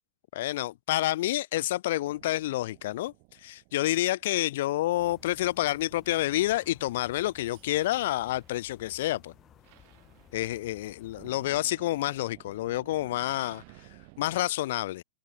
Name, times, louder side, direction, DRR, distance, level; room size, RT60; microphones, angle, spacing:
voice 1, 0.3-3.1 3.4-9.3 10.3-13.6 14.2-15.0, left 15 dB, 65° left, 0.4 m, -28 dB
sound 1, 2.0-14.4, right 35 dB, 45° right, 5.4 m, -56 dB
sound 2, 5.0-11.6, left 11 dB, 25° left, 2.0 m, -57 dB
open air
supercardioid pair, 165°, 0 cm